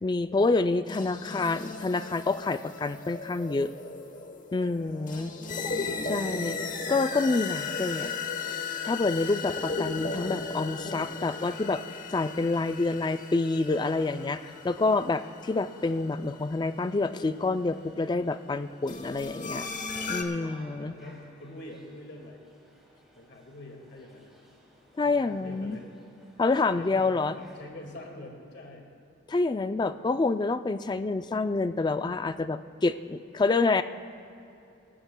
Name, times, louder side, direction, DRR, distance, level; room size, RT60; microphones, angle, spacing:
voice 1, 0.0-3.7 4.5-5.3 6.0-8.1 8.8-11.8 12.1-19.7 20.1-20.9 25.0-25.8 26.4-27.3 29.3-33.8, left 3 dB, 20° left, 11 dB, 0.3 m, -27 dB
sound 1, 0.9-17.0 18.9-20.2, left 4 dB, 40° left, 1.0 m, -36 dB
voice 2, 4.7-5.4 19.9-20.4 20.8-22.4 23.2-24.3 25.0-25.9 26.8-28.9, left 1 dB, 60° left, 1 dB, 2.0 m, -46 dB
sound 2, 9.2-27.7, equal, ahead, 2.7 m, -56 dB
26.5 x 13.5 x 2.2 m, 2.7 s
head